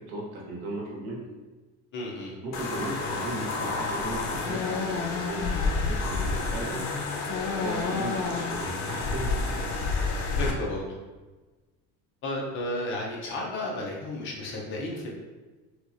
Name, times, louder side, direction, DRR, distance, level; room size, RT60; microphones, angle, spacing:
voice 1, 0.1-1.3 2.4-6.8 7.6-9.7, right 2 dB, 85° right, -3 dB, 1.1 m, -36 dB
voice 2, 1.9-2.3 10.4-10.9 12.2-15.1, left 1 dB, 40° left, -3 dB, 0.7 m, -32 dB
sound 1, 2.5-10.5, left 3 dB, 75° left, 0.7 m, -29 dB
4.5 x 2.4 x 2.6 m, 1.2 s
cardioid pair, 170°, 32 cm